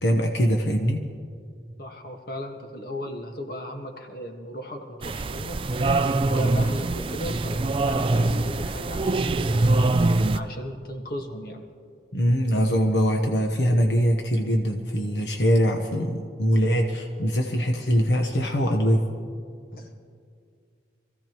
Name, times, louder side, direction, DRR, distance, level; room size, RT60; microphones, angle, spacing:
voice 1, 0.0-1.0 12.1-19.1, equal, 85° left, 2 dB, 1.1 m, -22 dB
voice 2, 1.8-5.6 6.2-9.7 10.3-11.6 19.7-20.1, left 1 dB, 55° left, 2 dB, 1.6 m, -37 dB
sound 1, 5.0-10.4, right 2 dB, 30° right, 0.4 m, -23 dB
25.0 x 15.5 x 3.1 m, 2.2 s
head